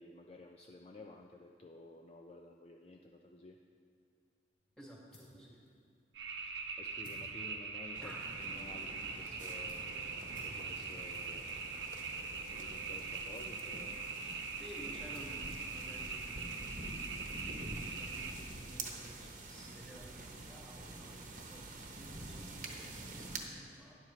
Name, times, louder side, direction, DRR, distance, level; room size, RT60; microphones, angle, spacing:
voice 1, 0.0-3.6 6.8-9.9 10.4-11.7 12.2-14.0, left 2 dB, 30° left, 2 dB, 0.4 m, -53 dB
sound 1, 4.5-16.6, left 1 dB, 75° left, 2.8 m, -63 dB
voice 2, 4.8-5.6 8.0-8.2 14.6-16.5 16.9-24.0, equal, 5° left, -4 dB, 1.7 m, -54 dB
sound 2, 6.1-18.3, right 4 dB, 75° right, 0.9 m, -42 dB
sound 3, 7.9-23.4, right 2 dB, 45° right, 1.0 m, -47 dB
12.5 x 10.5 x 3.1 m, 2.4 s
head